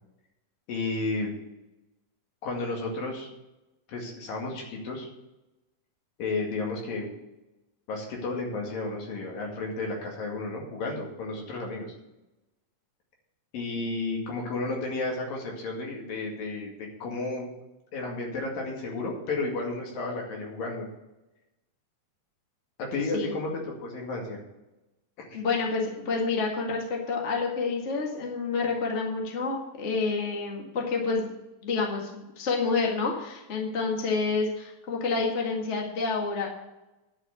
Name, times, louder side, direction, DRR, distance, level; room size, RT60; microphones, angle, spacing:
voice 1, 0.7-1.3 2.4-3.3 3.9-5.1 6.2-7.1 7.9-11.9 13.5-17.5 17.9-20.9 22.8-24.4 25.2-25.4, left 3 dB, 75° left, -1 dB, 3.8 m, -32 dB
voice 2, 25.3-31.3 31.6-36.5, left 4 dB, 30° left, -1 dB, 1.4 m, -28 dB
11.0 x 5.9 x 8.0 m, 0.99 s
omnidirectional pair, 4.1 m